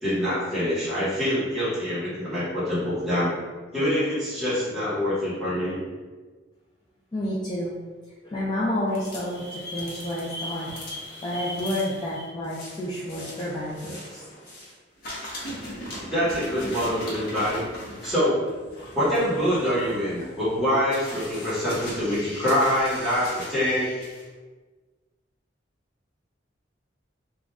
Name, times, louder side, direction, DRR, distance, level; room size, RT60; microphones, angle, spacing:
voice 1, 0.0-3.4 3.7-5.8 16.1-17.6 18.0-18.4 18.9-23.9, equal, ahead, -12 dB, 1.2 m, -25 dB
voice 2, 7.1-7.7 8.2-10.7 11.2-14.2, left 1 dB, 25° left, -8 dB, 0.4 m, -30 dB
sound 1, 8.9-14.7 15.0-24.2, left 1 dB, 55° left, 0.8 m, -39 dB
2.5 x 2.3 x 3.3 m, 1.3 s
head